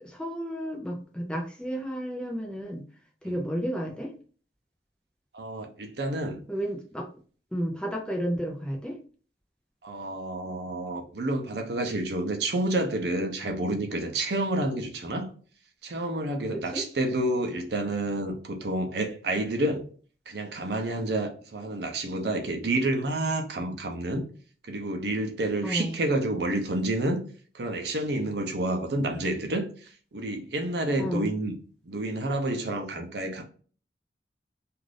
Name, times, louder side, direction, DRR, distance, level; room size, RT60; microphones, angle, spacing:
voice 1, 0.0-2.8 3.2-4.1 6.5-7.1 7.5-9.0 16.5-16.8 25.6-26.0 31.0-31.3, equal, 5° left, 0.5 m, -32 dB
voice 2, 5.3-6.4 9.8-15.3 15.8-19.8 20.3-24.2 24.6-27.2 27.5-31.6 31.8-33.4, right 1 dB, 65° right, 0.6 m, -29 dB
2.5 x 2.5 x 3.3 m
head